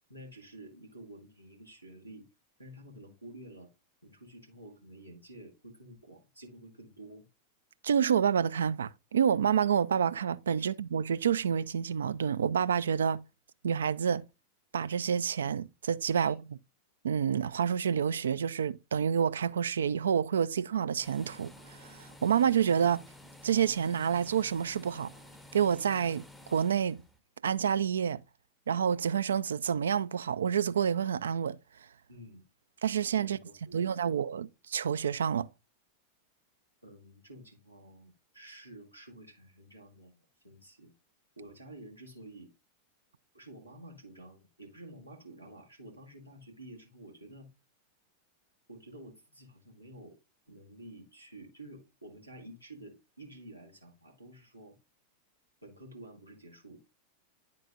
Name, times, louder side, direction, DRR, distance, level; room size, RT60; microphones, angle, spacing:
voice 1, 0.1-2.3 2.6-3.7 4.0-7.3 10.5-10.7 16.1-16.3 32.1-32.4 33.2-34.2 36.8-40.9 41.4-42.5 43.3-47.5 48.7-50.2 50.5-54.8 55.6-56.8, right 1 dB, 90° right, 1.5 m, -50 dB
voice 2, 7.8-13.2 13.6-14.2 14.7-16.4 17.0-23.0 23.4-25.1 25.5-26.2 26.5-27.0 27.4-28.2 28.7-31.6 32.8-33.4 33.7-35.5, right 8 dB, 65° right, 0.3 m, -28 dB
sound 1, 21.0-27.2, left 1 dB, 5° left, 0.6 m, -52 dB
10.5 x 3.8 x 2.4 m
figure-of-eight pair, 90°, 0 cm